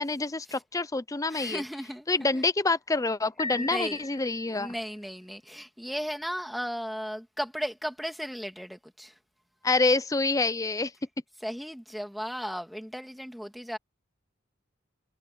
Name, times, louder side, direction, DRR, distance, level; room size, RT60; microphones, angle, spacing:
voice 1, 0.0-1.6 2.1-4.7 9.6-10.9, left 3 dB, 15° left, 0.5 m, -27 dB
voice 2, 1.3-2.1 3.5-4.0 4.5-9.1 11.4-13.8, equal, ahead, 2.2 m, -35 dB
Piano, 3.4-4.8, left 3 dB, 35° left, 1.9 m, -38 dB
head